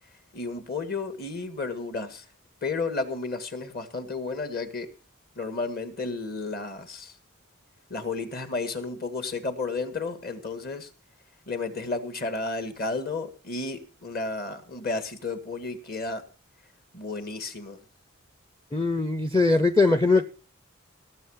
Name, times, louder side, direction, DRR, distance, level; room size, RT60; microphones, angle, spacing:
voice 1, 0.3-2.3 2.6-4.9 5.4-7.2 7.9-10.9 11.5-16.2 16.9-17.8, left 3 dB, 45° left, 8 dB, 1.9 m, -32 dB
voice 2, 18.7-20.3, left 3 dB, 15° left, 11 dB, 0.6 m, -21 dB
18.5 x 7.3 x 5.7 m, 0.38 s
head